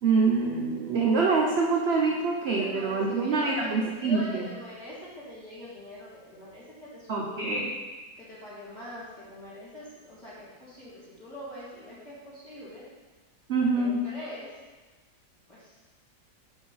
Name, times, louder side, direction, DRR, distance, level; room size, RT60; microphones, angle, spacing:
voice 1, 0.0-4.4 7.1-7.7 13.5-14.0, right 4 dB, 60° right, -1 dB, 0.7 m, -25 dB
voice 2, 2.6-7.5 8.2-12.9 13.6-14.5 15.5-15.7, left 1 dB, 25° left, -10 dB, 2.7 m, -43 dB
6.2 x 4.9 x 5.5 m, 1.3 s
omnidirectional pair, 1.9 m